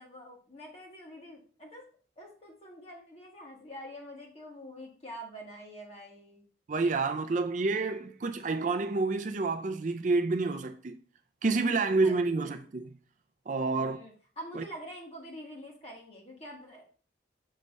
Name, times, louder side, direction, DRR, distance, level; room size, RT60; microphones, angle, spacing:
voice 1, 0.0-1.8 2.2-6.4 12.0-12.6 13.7-16.9, equal, 30° left, 1.8 m, -46 dB
voice 2, 6.7-11.0 11.4-12.9 13.5-14.0 14.5-14.6, right 3 dB, 40° right, 0.4 m, -29 dB
6.4 x 3.3 x 5.3 m
head